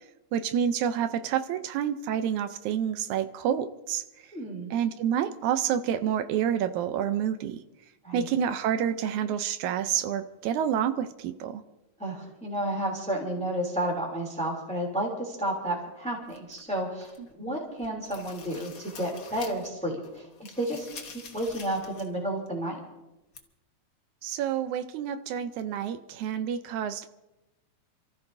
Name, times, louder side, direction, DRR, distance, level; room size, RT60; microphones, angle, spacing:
voice 1, 0.3-4.0 4.7-7.6 8.1-11.6 17.4-17.6 24.2-27.1, right 9 dB, 85° right, 10 dB, 2.1 m, -28 dB
voice 2, 4.3-4.7 8.0-8.3 12.0-17.1 17.4-20.2 20.6-22.8, right 1 dB, ahead, -1 dB, 2.5 m, -31 dB
sound 1, 16.3-17.3 17.7-19.8 20.0-22.2 22.5-22.6 23.3-23.4, left 5 dB, 55° left, 0.9 m, -47 dB
28.5 x 14.5 x 2.7 m, 0.99 s
omnidirectional pair, 3.3 m